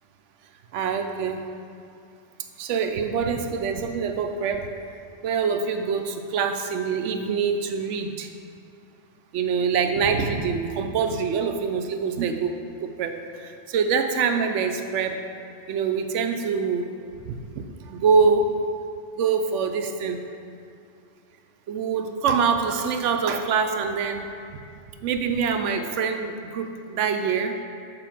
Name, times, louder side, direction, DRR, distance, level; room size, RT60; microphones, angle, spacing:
voice 1, 0.7-1.5 2.6-4.7 5.2-8.3 9.3-15.2 15.7-16.9 17.3-18.6 19.1-20.3 21.7-24.3 25.0-27.6, right 5 dB, 85° right, 6 dB, 0.9 m, -25 dB
6.9 x 4.6 x 5.9 m, 2.5 s
omnidirectional pair, 1.2 m